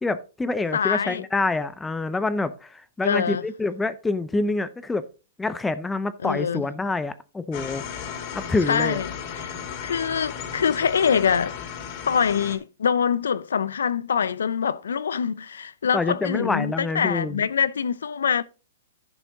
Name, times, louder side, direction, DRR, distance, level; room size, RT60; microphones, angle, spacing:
voice 1, 0.0-5.1 5.4-7.8 8.3-9.0 15.9-17.4, left 3 dB, 10° left, 0.5 m, -26 dB
voice 2, 0.7-1.2 3.0-3.4 6.2-6.6 8.7-11.6 12.1-18.4, left 7 dB, 90° left, 0.6 m, -24 dB
sound 1, 7.5-12.6, left 7 dB, 40° left, 2.3 m, -35 dB
11.0 x 6.0 x 3.9 m
hypercardioid pair, 145°, 0 cm